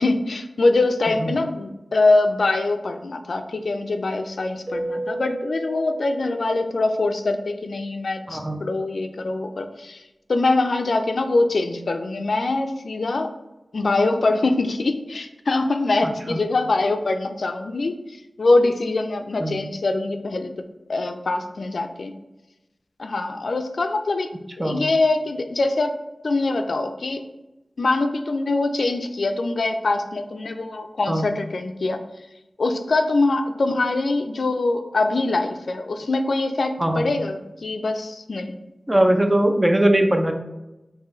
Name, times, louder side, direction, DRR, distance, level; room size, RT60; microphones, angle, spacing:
voice 1, 0.0-10.0 10.3-13.3 13.7-20.5 20.9-22.1 23.0-24.3 24.6-25.9 26.2-27.2 27.8-32.0 32.6-38.6, left 2 dB, 75° left, 7 dB, 0.3 m, -23 dB
Keyboard (musical), 4.7-7.2, right 1 dB, 50° right, 0.9 m, -33 dB
voice 2, 8.3-8.6 16.3-16.4 19.4-19.6 24.6-24.9 31.1-31.3 36.8-37.1 38.9-40.3, right 1 dB, 25° right, 4 dB, 0.5 m, -20 dB
3.7 x 2.6 x 4.2 m, 0.98 s
wide cardioid pair, 50°, 0 cm